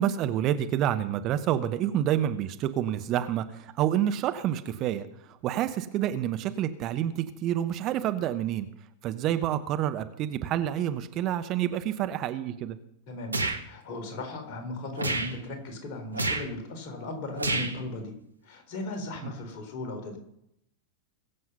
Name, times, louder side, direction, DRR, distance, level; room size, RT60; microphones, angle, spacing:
voice 1, 0.0-8.7 9.0-12.8 19.2-19.3, right 11 dB, 35° right, 10 dB, 1.0 m, -28 dB
voice 2, 13.1-13.4 13.6-18.1 18.4-20.2, left 2 dB, 45° left, 4 dB, 3.9 m, -37 dB
sound 1, 13.3-13.6 15.0-15.3 16.1-16.5 17.4-17.8, right 2 dB, 80° right, 1.3 m, -28 dB
22.0 x 7.7 x 5.6 m, 0.77 s
figure-of-eight pair, 90°, 0 cm